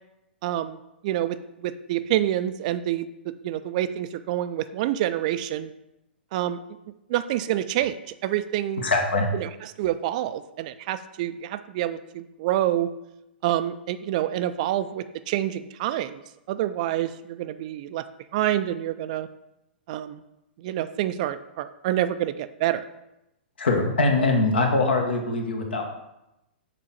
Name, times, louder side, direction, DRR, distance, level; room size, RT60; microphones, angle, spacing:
voice 1, 0.4-0.8 1.0-5.7 6.3-6.6 7.1-8.0 8.2-8.9 9.3-9.5 9.8-12.9 13.4-16.2 16.5-18.0 18.3-19.3 19.9-20.2 20.6-22.8, right 12 dB, 40° right, 12 dB, 0.4 m, -27 dB
voice 2, 8.8-9.3 23.6-25.8, left 3 dB, 65° left, 3 dB, 1.4 m, -22 dB
7.0 x 4.5 x 4.2 m, 0.88 s
figure-of-eight pair, 110°, 6 cm